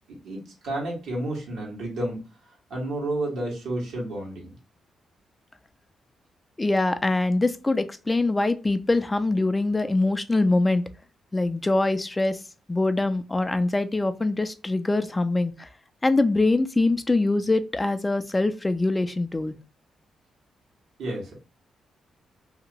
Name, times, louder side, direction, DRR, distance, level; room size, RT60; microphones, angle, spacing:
voice 1, 0.1-4.5 21.0-21.3, right 1 dB, 80° right, -2 dB, 1.3 m, -31 dB
voice 2, 6.6-10.8 11.3-12.4 12.7-15.7 16.0-19.6, left 2 dB, 20° left, 10 dB, 0.4 m, -23 dB
2.8 x 2.5 x 2.9 m, 0.32 s
supercardioid pair, 60°, 0 cm